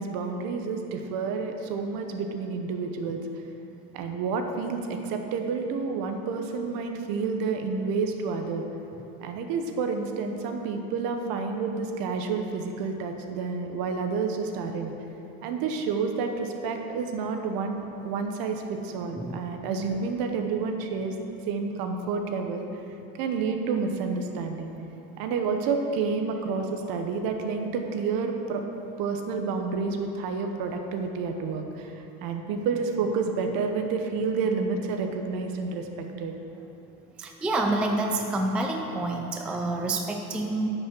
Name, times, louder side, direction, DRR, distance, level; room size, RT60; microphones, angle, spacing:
voice 1, 0.0-3.2 3.9-8.6 9.2-14.9 15.4-21.1 21.5-22.7 23.2-24.7 25.2-28.6 29.0-35.9 36.2-36.3, right 5 dB, 60° right, 5 dB, 1.1 m, -29 dB
voice 2, 37.2-40.7, right 2 dB, 5° right, 2 dB, 0.3 m, -28 dB
9.8 x 5.6 x 6.1 m, 3.0 s
cardioid pair, 140°, 39 cm